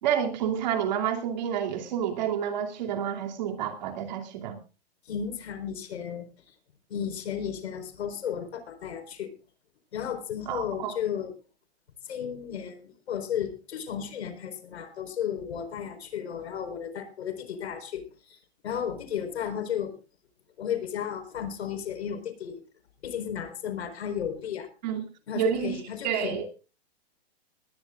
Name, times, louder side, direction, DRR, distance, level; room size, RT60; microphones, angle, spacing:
voice 1, 0.0-4.6 10.5-11.0 24.8-25.0 25.3-25.7 26.0-26.5, right 9 dB, 45° right, 3 dB, 2.7 m, -29 dB
voice 2, 5.1-6.3 6.9-9.3 9.9-11.3 12.1-18.4 18.6-19.9 20.6-22.6 23.0-24.7 25.3-26.5, left 8 dB, 90° left, 7 dB, 4.4 m, -34 dB
20.0 x 17.0 x 2.4 m, 0.32 s
hypercardioid pair, 175°, 32 cm